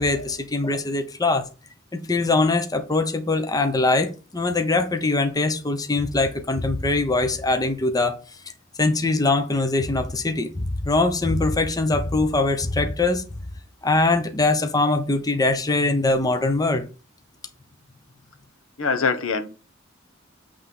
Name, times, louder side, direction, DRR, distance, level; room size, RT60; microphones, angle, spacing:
voice 1, 0.0-1.5 1.9-8.2 8.8-13.2 13.8-16.8, left 2 dB, 20° left, 0.8 m, -22 dB
voice 2, 18.8-19.5, left 5 dB, 80° left, 1.0 m, -24 dB
8.0 x 3.4 x 5.4 m
head